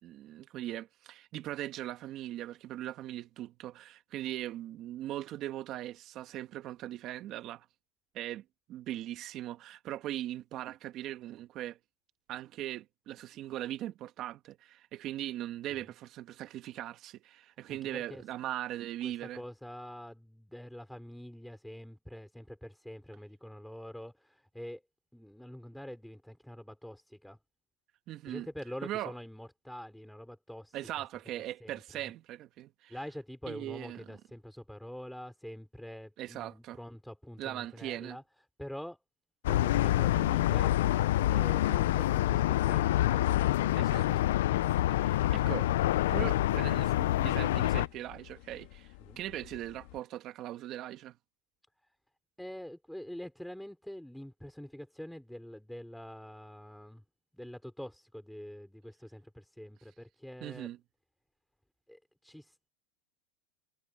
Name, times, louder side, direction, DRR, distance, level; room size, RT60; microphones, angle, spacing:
voice 1, 0.0-7.7 8.1-11.8 12.3-19.4 28.1-28.5 28.8-29.1 30.7-32.9 33.5-34.0 36.2-36.8 37.4-38.2 43.8-44.1 45.0-45.7 46.1-48.9 49.2-51.2 60.4-60.8, right 13 dB, 35° right, 2.1 m, -40 dB
voice 2, 17.7-18.2 19.0-24.8 25.1-27.4 28.3-31.0 31.3-32.1 32.9-38.2 38.6-39.0 39.4-40.8 41.2-44.2 49.0-49.2 51.8-52.0 52.4-57.0 57.3-60.7 61.9-62.7, equal, ahead, 4.2 m, -46 dB
sound 1, 39.4-47.9, left 14 dB, 75° left, 0.5 m, -27 dB
sound 2, 42.3-50.0, left 22 dB, 60° left, 2.4 m, -54 dB
supercardioid pair, 150°, 0 cm